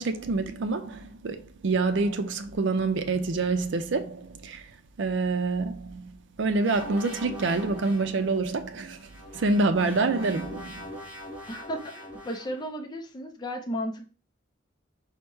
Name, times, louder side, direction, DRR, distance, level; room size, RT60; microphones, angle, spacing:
voice 1, 0.0-4.7 5.0-6.1 6.4-10.9, right 3 dB, 70° right, 0.5 m, -27 dB
sound 1, 6.6-8.2 9.0-12.6, equal, 10° right, 1.0 m, -42 dB
voice 2, 11.5-14.1, equal, 20° left, 0.5 m, -34 dB
4.5 x 2.1 x 4.5 m
head